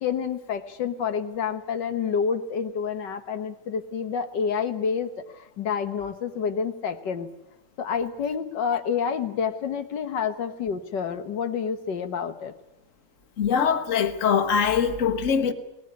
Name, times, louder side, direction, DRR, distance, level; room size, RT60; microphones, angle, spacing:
voice 1, 0.0-5.1 5.6-7.3 7.8-12.5, left 6 dB, 85° left, 1.9 m, -28 dB
voice 2, 13.4-15.5, left 7 dB, 50° left, 1.6 m, -22 dB
19.5 x 19.5 x 9.6 m
omnidirectional pair, 1.9 m